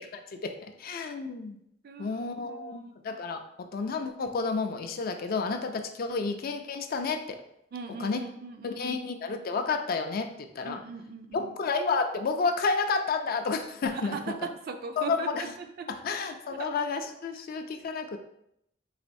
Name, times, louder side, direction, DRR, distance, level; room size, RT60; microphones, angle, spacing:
voice 1, 0.0-1.6 2.0-7.4 8.0-8.2 8.6-10.8 11.3-14.3 15.0-15.4 15.9-18.2, left 4 dB, 50° left, 7 dB, 0.4 m, -31 dB
voice 2, 1.8-2.9 6.1-6.2 7.7-9.0 10.6-11.5 14.1-15.9 16.5-16.7, right 5 dB, 50° right, 6 dB, 0.4 m, -39 dB
4.1 x 3.0 x 2.6 m, 0.76 s
head